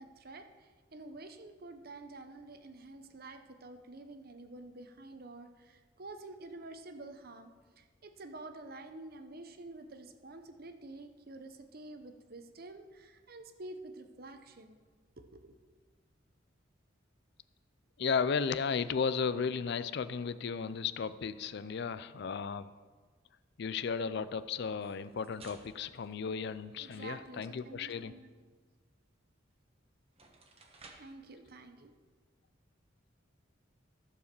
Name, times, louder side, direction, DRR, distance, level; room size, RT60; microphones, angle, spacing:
voice 1, 0.0-14.8 15.2-15.6 26.8-28.3 30.9-31.9, right 2 dB, 50° right, 8 dB, 0.8 m, -49 dB
voice 2, 18.0-22.7 23.6-28.1, left 5 dB, 60° left, 15 dB, 0.4 m, -34 dB
sound 1, 24.7-27.1 29.5-29.6 30.0-31.2, right 3 dB, 30° right, 1.1 m, -58 dB
14.0 x 4.8 x 6.7 m, 1.4 s
head